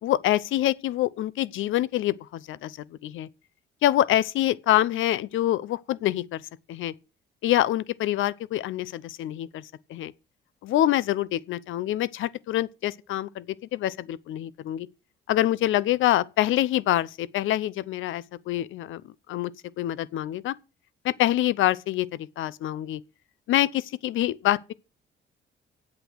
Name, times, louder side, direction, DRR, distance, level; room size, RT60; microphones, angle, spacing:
voice 1, 0.0-2.8 3.0-3.3 3.8-6.4 6.7-6.9 7.4-10.1 10.6-14.9 15.3-19.5 19.8-20.5 21.0-23.0 23.5-24.7, left 13 dB, 85° left, 0.8 m, -26 dB
8.5 x 8.3 x 7.6 m
cardioid pair, 90°, 20 cm